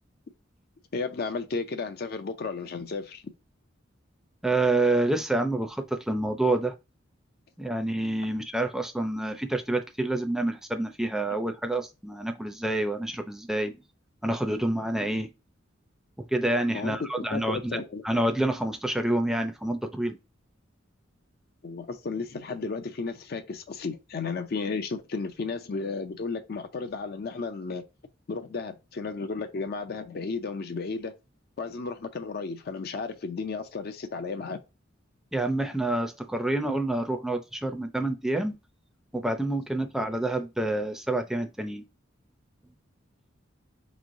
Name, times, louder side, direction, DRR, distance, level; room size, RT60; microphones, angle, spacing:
voice 1, 0.9-3.2 16.7-18.0 21.6-27.8 28.3-31.1 31.6-34.6, left 4 dB, 55° left, 0.5 m, -33 dB
voice 2, 4.4-6.7 7.6-13.7 14.2-15.3 16.3-20.2 35.3-38.5 39.1-41.8, right 2 dB, ahead, 0.5 m, -28 dB
4.4 x 3.1 x 2.6 m
head